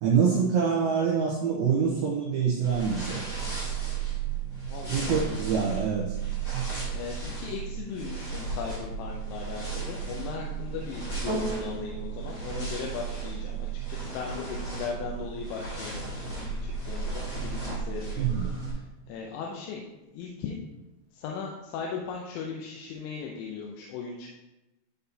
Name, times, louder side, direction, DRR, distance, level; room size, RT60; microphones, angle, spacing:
voice 1, 0.0-3.2 4.9-6.2 6.5-6.7 18.2-18.5, right 6 dB, 85° right, -4 dB, 2.2 m, -25 dB
sound 1, 2.6-18.7, right 5 dB, 45° left, 1.6 m, -34 dB
voice 2, 4.7-5.5 6.9-18.2 18.7-19.8 20.1-20.6 21.1-24.4, left 5 dB, 80° left, -1 dB, 2.9 m, -38 dB
sound 2, 11.3-19.8 20.5-20.6, right 1 dB, 60° right, 1.2 m, -42 dB
12.0 x 4.1 x 2.8 m, 1.0 s
omnidirectional pair, 5.6 m